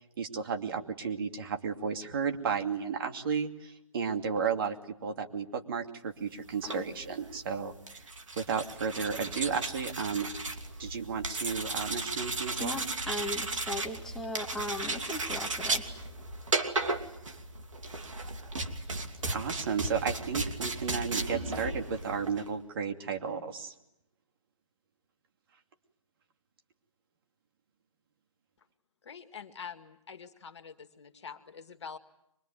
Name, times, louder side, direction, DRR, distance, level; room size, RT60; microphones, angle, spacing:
voice 1, 0.2-4.8 5.0-7.7 8.4-10.3 10.8-12.8 19.3-23.7, right 6 dB, 45° right, 5 dB, 2.6 m, -33 dB
sound 1, 6.5-22.5, right 2 dB, 70° right, 2.6 m, -35 dB
voice 2, 12.6-15.8, left 1 dB, ahead, 0 dB, 1.9 m, -37 dB
voice 3, 29.0-32.0, left 6 dB, 55° left, 9 dB, 2.0 m, -45 dB
24.5 x 21.5 x 9.2 m, 0.80 s
figure-of-eight pair, 145°, 17 cm